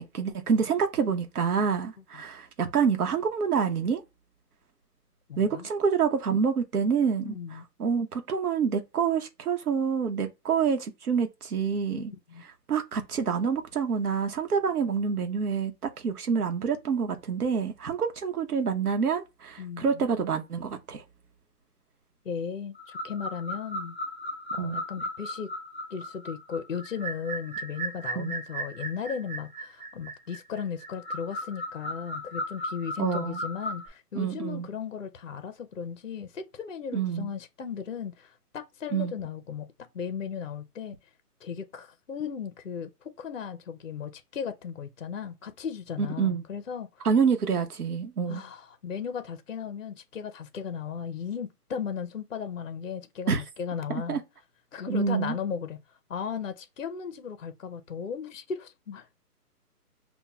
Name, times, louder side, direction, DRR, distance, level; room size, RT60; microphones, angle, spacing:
voice 1, 0.0-4.0 5.4-12.1 12.7-15.7 16.0-21.0 24.6-24.8 28.2-28.4 33.0-33.4 34.1-34.7 36.9-37.3 38.9-39.1 46.0-46.4 47.0-48.4 53.3-53.4 53.9-54.2 54.9-55.3, right 6 dB, 65° right, 0.9 m, -27 dB
voice 2, 5.3-5.7 7.2-7.6 12.3-12.4 19.6-20.0 22.2-24.0 24.5-25.5 25.9-41.0 41.4-47.1 48.3-54.2 54.7-55.8 56.1-59.1, left 7 dB, 55° left, 0.5 m, -36 dB
sound 1, 22.7-33.9, equal, 20° right, 1.4 m, -36 dB
5.7 x 2.2 x 2.2 m
hypercardioid pair, 180°, 48 cm